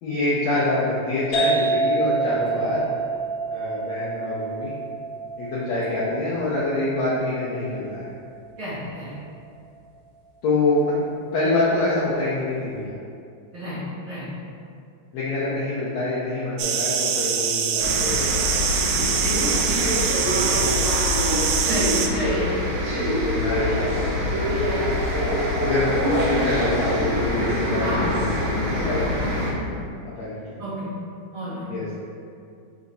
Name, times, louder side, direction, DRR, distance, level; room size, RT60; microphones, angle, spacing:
voice 1, 0.0-2.8 3.5-4.7 5.4-8.1 10.4-11.0 11.3-12.9 15.1-19.1 20.2-20.9 23.2-24.9 25.6-29.7 30.2-30.6 31.7-32.0, left 2 dB, 85° left, -9 dB, 1.5 m, -26 dB
sound 1, 1.3-8.8, right 3 dB, 55° left, 1.0 m, -28 dB
voice 2, 8.6-9.2 13.5-14.3 19.2-19.3 19.7-19.8 21.6-22.4 27.8-28.0 30.6-30.9 31.3-31.7, equal, 70° right, -11 dB, 1.2 m, -31 dB
sound 2, 16.6-22.1, right 7 dB, 90° right, 2.5 m, -24 dB
sound 3, 17.8-29.5, left 1 dB, 55° right, 1.4 m, -24 dB
5.7 x 4.8 x 4.1 m, 2.4 s
omnidirectional pair, 4.3 m